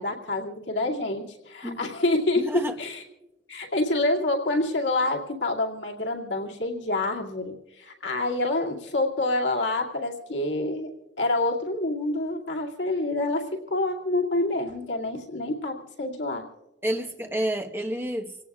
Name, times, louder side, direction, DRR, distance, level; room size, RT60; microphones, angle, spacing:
voice 1, 0.0-3.0 3.5-10.9 11.2-16.4, left 2 dB, 85° left, 0 dB, 2.3 m, -27 dB
voice 2, 2.4-2.8 16.8-18.4, right 1 dB, 15° right, 3 dB, 1.2 m, -29 dB
28.0 x 17.5 x 2.4 m, 1.0 s
head